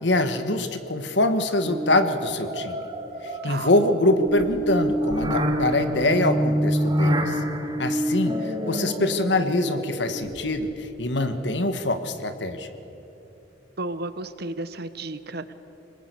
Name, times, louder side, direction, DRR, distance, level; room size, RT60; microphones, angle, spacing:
voice 1, 0.0-2.8 3.2-7.4 7.8-12.7, left 2 dB, 70° left, 9 dB, 1.6 m, -24 dB
sound 1, 1.6-10.7, equal, 30° right, 2.5 m, -27 dB
voice 2, 13.8-15.5, right 2 dB, 60° right, 12 dB, 1.1 m, -33 dB
25.5 x 20.0 x 8.3 m, 2.9 s
head